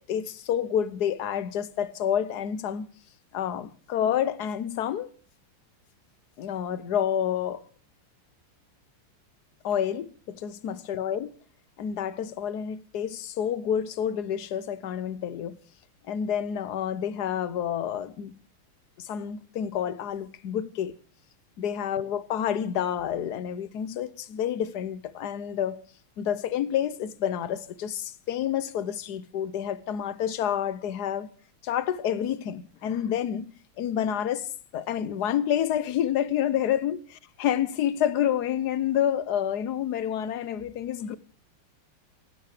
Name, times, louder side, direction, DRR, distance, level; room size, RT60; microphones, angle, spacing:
voice 1, 0.1-2.9 3.3-5.1 6.4-7.6 9.6-11.3 11.8-15.6 16.1-18.3 19.0-20.9 21.6-25.8 26.2-31.3 31.6-33.5 33.8-37.0 37.4-41.2, left 9 dB, 60° left, 1.3 m, -29 dB
17.0 x 16.5 x 5.0 m
omnidirectional pair, 2.4 m